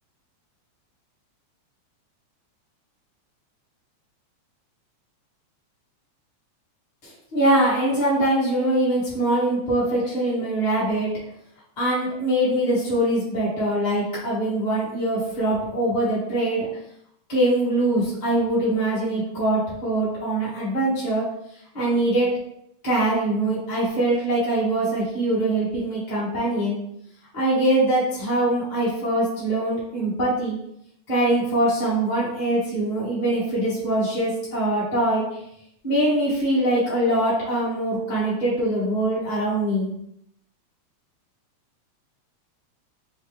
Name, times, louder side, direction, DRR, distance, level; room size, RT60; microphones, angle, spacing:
voice 1, 7.0-11.1 11.8-16.7 17.3-21.3 21.7-22.3 22.8-26.8 27.3-30.6 31.1-35.2 35.8-39.9, right 1 dB, 20° left, -9 dB, 1.2 m, -23 dB
4.6 x 3.4 x 3.2 m, 0.74 s
omnidirectional pair, 3.3 m